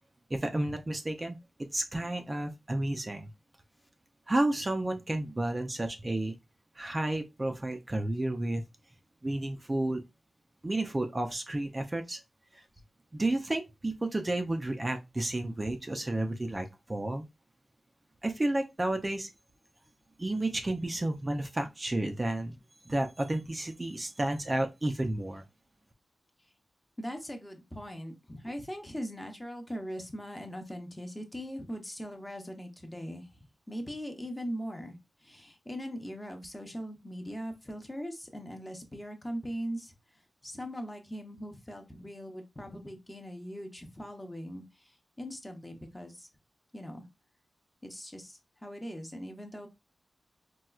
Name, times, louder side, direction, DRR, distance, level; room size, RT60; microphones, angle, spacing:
voice 1, 0.3-1.4 1.7-3.3 4.3-6.3 6.8-8.6 9.2-10.0 10.6-12.2 12.5-12.6 13.1-17.2 18.2-19.3 20.2-22.6 22.9-25.4, right 1 dB, 25° right, 0.4 m, -31 dB
voice 2, 27.0-35.0 35.2-46.3 46.7-47.0 47.8-49.7, equal, 10° left, 0.7 m, -40 dB
4.2 x 2.2 x 2.3 m
wide cardioid pair, 125°, 0 cm